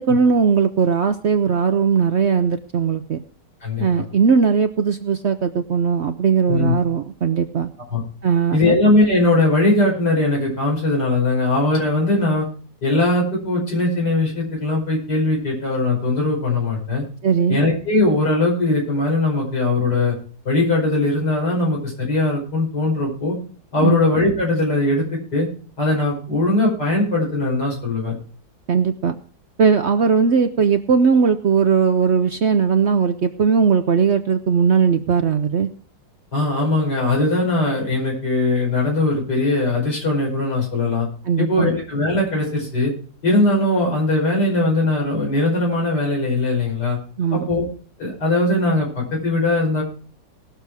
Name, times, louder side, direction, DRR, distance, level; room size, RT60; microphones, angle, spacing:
voice 1, 0.1-3.2 3.8-7.7 8.2-8.8 17.2-17.6 23.8-24.0 28.7-29.2 29.6-35.7 41.2-41.7 47.2-47.5, right 6 dB, 60° right, 8 dB, 0.7 m, -18 dB
voice 2, 3.6-4.0 6.5-6.7 7.9-8.0 8.5-12.5 12.8-17.0 17.5-20.1 20.5-23.4 23.7-25.0 25.3-25.5 25.8-28.1 36.3-41.1 41.4-42.9 43.2-47.0 47.3-47.7 48.0-49.8, left 2 dB, 75° left, -3 dB, 6.0 m, -20 dB
19.0 x 6.9 x 4.7 m, 0.43 s
omnidirectional pair, 1.8 m